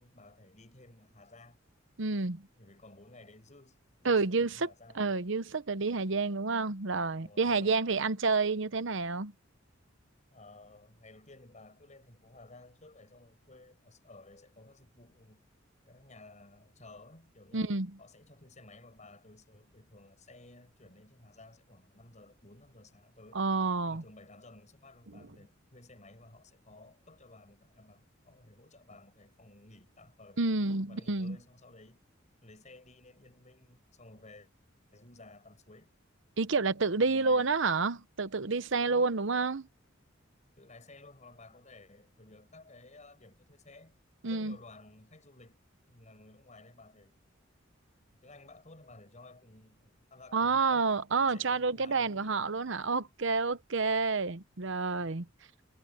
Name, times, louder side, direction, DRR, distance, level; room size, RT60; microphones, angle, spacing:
voice 1, 0.0-1.6 2.6-5.2 7.2-8.0 10.3-15.5 15.9-17.7 18.0-23.4 23.9-30.4 30.9-32.0 32.4-34.5 34.9-36.0 37.0-37.6 38.8-39.2 40.6-44.0 44.3-45.6 45.9-47.2 48.2-50.9 51.2-52.5, left 2 dB, 35° left, 7.4 m, -55 dB
voice 2, 2.0-2.5 4.0-4.7 4.9-9.3 17.5-17.9 23.3-24.0 30.4-31.4 36.4-39.7 44.2-44.6 50.3-55.3, right 4 dB, 65° right, 1.0 m, -29 dB
head